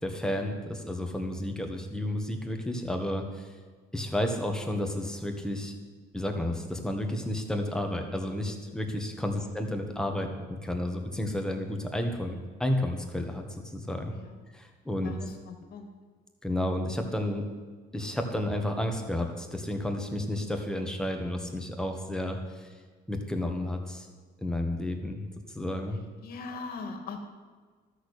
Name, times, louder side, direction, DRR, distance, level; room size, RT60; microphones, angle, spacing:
voice 1, 0.0-3.5 3.9-5.8 6.1-14.1 14.5-15.1 16.4-17.5 17.9-22.7 23.1-24.1 24.4-26.0, left 1 dB, 5° left, 3 dB, 1.7 m, -31 dB
voice 2, 15.0-15.9 26.2-27.2, left 4 dB, 60° left, 5 dB, 2.1 m, -41 dB
13.0 x 6.8 x 8.3 m, 1.5 s
cardioid pair, 110°, 17 cm